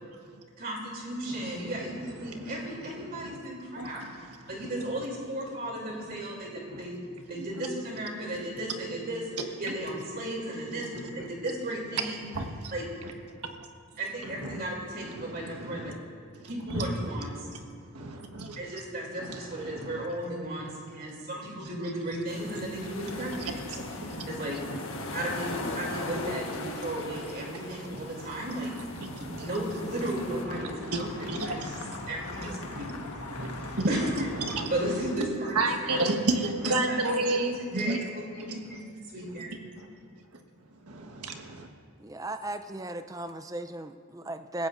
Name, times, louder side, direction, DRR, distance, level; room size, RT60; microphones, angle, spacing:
voice 1, 0.6-4.0 4.5-6.9 7.3-9.3 9.6-12.3 12.7-12.8 14.0-15.9 16.4-17.5 18.6-23.7 24.0-24.6 25.1-28.7 29.4-31.8 32.1-34.3 34.7-35.5 35.8-36.0 36.6-37.5 37.7-38.1 38.5-38.8 39.1-39.5, right 1 dB, 40° right, -1 dB, 3.1 m, -35 dB
voice 2, 1.3-3.4 3.8-4.2 4.6-4.7 6.1-6.2 6.7-6.8 11.2-11.3 12.3-12.7 13.0-13.7 14.3-14.6 15.1-15.9 16.3-17.1 17.9-18.7 19.2-20.0 22.4-22.6 23.1-23.5 24.0-24.3 24.7-24.8 25.4-25.5 27.0-27.1 27.9-28.4 28.7-29.5 30.5-31.8 32.3-32.9 33.3-33.5 33.7-34.1 34.3-34.7 35.5-38.0 38.4-38.8 39.4-39.5 39.7-39.9 40.8-41.7, right 2 dB, 85° right, 4 dB, 1.5 m, -33 dB
sound 1, 22.3-30.4, left 2 dB, 65° left, 1.4 m, -39 dB
sound 2, 25.0-35.1, left 2 dB, 90° left, 1.4 m, -43 dB
voice 3, 42.0-44.7, right 1 dB, 15° right, 9 dB, 0.5 m, -36 dB
27.0 x 15.5 x 2.6 m, 2.3 s
head